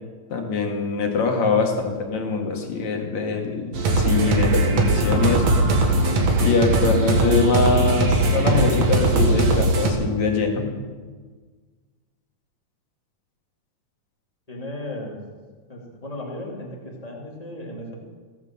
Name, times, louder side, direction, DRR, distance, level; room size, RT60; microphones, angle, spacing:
voice 1, 0.3-5.5 5.8-6.0 6.4-10.7, left 4 dB, 60° left, 2 dB, 3.0 m, -23 dB
sound 1, 3.7-9.9, right 2 dB, 60° right, 2.7 m, -20 dB
voice 2, 14.5-15.2 15.7-18.0, left 1 dB, 15° left, -2 dB, 2.3 m, -35 dB
16.5 x 9.5 x 7.4 m, 1.4 s
omnidirectional pair, 3.8 m